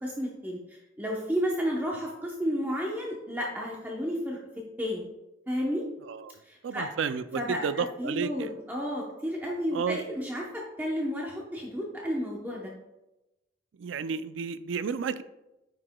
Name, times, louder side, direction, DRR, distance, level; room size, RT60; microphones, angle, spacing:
voice 1, 0.0-5.0 5.5-5.8 6.4-6.9 7.3-12.7, equal, 10° right, -3 dB, 0.8 m, -32 dB
voice 2, 6.0-6.4 6.6-8.5 9.7-10.0 13.8-15.2, right 6 dB, 75° right, 13 dB, 0.4 m, -32 dB
9.7 x 5.8 x 2.2 m, 0.96 s
head